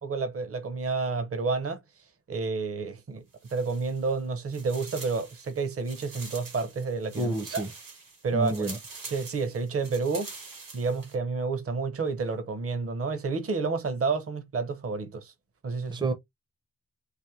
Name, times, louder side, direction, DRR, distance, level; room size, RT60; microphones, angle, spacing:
voice 1, 0.0-1.8 2.3-3.2 3.5-7.7 8.2-8.7 9.1-10.3 10.7-15.3 15.6-16.0, right 4 dB, 40° right, 0.8 m, -30 dB
sound 1, 3.3-4.2 4.5-11.1, right 4 dB, 75° right, 1.6 m, -45 dB
voice 2, 7.2-7.7 8.3-8.8 15.9-16.1, right 2 dB, 15° right, 0.6 m, -29 dB
4.2 x 2.6 x 3.1 m
wide cardioid pair, 120°, 34 cm